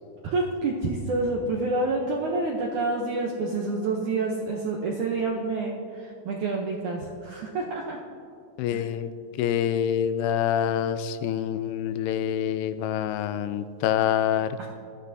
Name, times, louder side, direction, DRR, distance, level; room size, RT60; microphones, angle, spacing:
voice 1, 0.2-8.0 8.7-8.9 14.6-14.7, right 3 dB, 75° right, -1 dB, 1.8 m, -28 dB
voice 2, 8.6-9.1 9.4-14.7, left 9 dB, 85° left, 11 dB, 2.6 m, -26 dB
19.0 x 13.0 x 2.7 m, 2.7 s
omnidirectional pair, 4.7 m